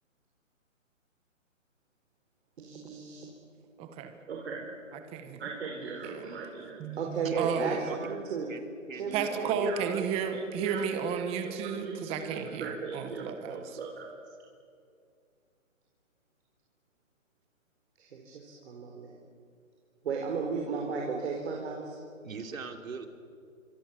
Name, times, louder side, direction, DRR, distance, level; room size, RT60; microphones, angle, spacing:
voice 1, 2.6-3.3 4.3-4.6 5.4-8.5 8.9-9.8 10.1-10.9 11.4-14.1 18.0-19.1 20.0-22.0, right 5 dB, 50° right, 0 dB, 4.4 m, -36 dB
voice 2, 3.8-4.1 4.9-5.4 6.0-6.3 6.8-7.9 9.1-13.6, right 7 dB, 15° right, 7 dB, 1.2 m, -33 dB
voice 3, 7.2-8.0 8.5-10.0 22.2-23.1, right 4 dB, 75° right, 5 dB, 3.4 m, -40 dB
28.0 x 25.5 x 7.2 m, 2.4 s
hypercardioid pair, 150°, 40 cm